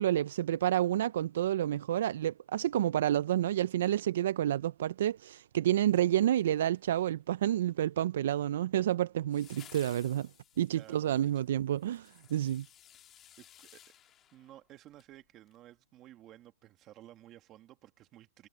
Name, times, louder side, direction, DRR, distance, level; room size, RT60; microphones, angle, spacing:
voice 1, 0.0-10.3 10.6-12.7, right 12 dB, 55° right, 0.3 m, -29 dB
sound 1, 5.9-6.8 9.3-15.1 15.5-15.6, left 10 dB, 20° left, 2.1 m, -58 dB
voice 2, 10.7-11.5 13.4-13.9 14.3-18.5, right 13 dB, 20° right, 1.9 m, -55 dB
hypercardioid pair, 170°, 0 cm